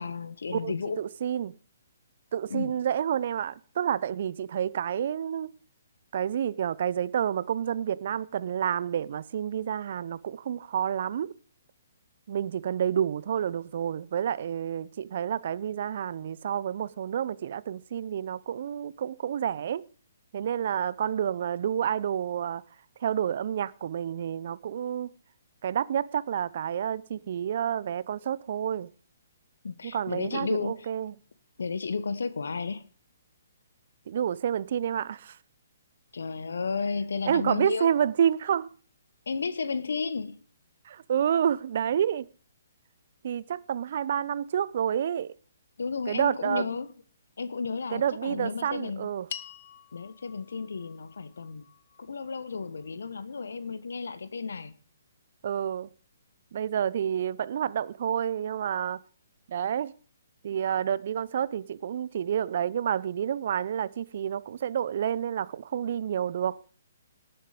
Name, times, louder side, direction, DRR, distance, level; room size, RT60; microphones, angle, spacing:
voice 1, 0.0-1.0 2.5-2.7 29.6-30.9 31.6-32.8 36.1-37.9 39.3-40.3 45.8-46.9 47.4-49.1 49.9-51.7 52.0-54.7, left 4 dB, 70° left, 1.3 m, -33 dB
voice 2, 0.5-1.6 2.3-5.5 6.1-11.3 12.3-19.8 20.3-22.6 23.0-25.1 25.6-28.9 29.8-31.1 34.1-35.4 37.3-38.7 40.8-42.3 43.2-45.3 46.1-46.7 47.9-49.3 55.4-55.9 56.5-59.0 59.5-59.9 60.4-66.6, right 9 dB, 50° right, 0.7 m, -29 dB
sound 1, 49.3-53.8, left 8 dB, 55° left, 1.0 m, -47 dB
18.0 x 7.8 x 5.0 m
figure-of-eight pair, 135°, 0 cm